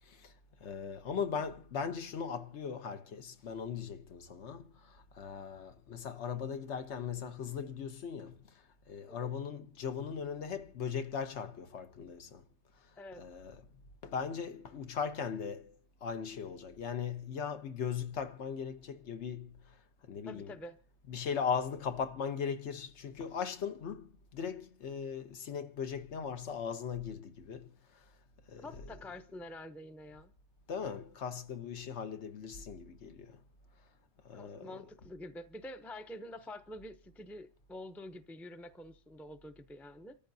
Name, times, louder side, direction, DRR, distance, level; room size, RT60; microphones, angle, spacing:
voice 1, 0.6-8.4 8.9-12.4 13.2-13.5 14.0-15.7 16.0-19.5 20.1-20.5 21.1-27.7 28.5-28.6 30.7-33.4 34.2-34.8, left 7 dB, 75° left, 1.2 m, -38 dB
voice 2, 20.2-20.8 28.6-30.3 34.3-40.2, left 1 dB, ahead, 0.5 m, -47 dB
28.5 x 14.0 x 2.7 m
omnidirectional pair, 1.2 m